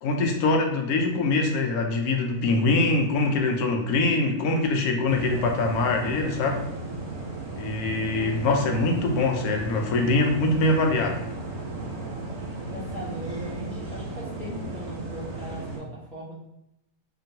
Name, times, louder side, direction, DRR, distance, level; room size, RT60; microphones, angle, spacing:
voice 1, 0.0-6.6 7.6-11.2, left 2 dB, 80° left, 3 dB, 1.0 m, -23 dB
sound 1, 5.1-15.8, right 2 dB, 75° right, 1.2 m, -35 dB
voice 2, 8.2-8.9 12.6-16.3, equal, ahead, -9 dB, 0.5 m, -39 dB
2.9 x 2.5 x 2.6 m, 0.82 s
omnidirectional pair, 1.6 m